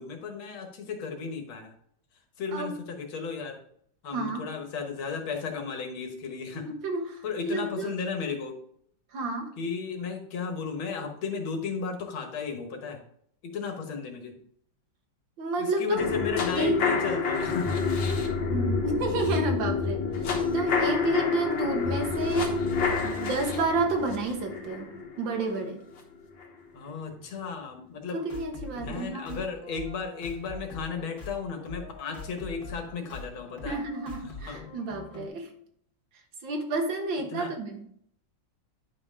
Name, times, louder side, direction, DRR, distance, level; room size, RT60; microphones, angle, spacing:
voice 1, 0.0-1.7 2.4-3.6 4.0-6.7 7.2-8.6 9.6-13.0 13.4-14.3 15.6-17.8 26.7-28.2 28.7-33.8 34.2-34.6 37.3-37.5, left 5 dB, 85° left, 4 dB, 2.1 m, -34 dB
voice 2, 4.1-4.5 6.7-7.9 9.1-9.5 15.4-16.0 16.6-16.8 18.5-20.0 20.4-22.6 23.0-24.9 25.2-25.8 28.1-29.4 33.6-35.5 36.4-37.8, right 2 dB, 70° right, 4 dB, 2.0 m, -30 dB
sound 1, 16.0-26.0 26.4-26.5, left 5 dB, 70° left, 1.9 m, -28 dB
sound 2, 28.3-35.3, left 2 dB, 40° left, 1.9 m, -43 dB
10.5 x 5.5 x 3.6 m, 0.65 s
omnidirectional pair, 2.2 m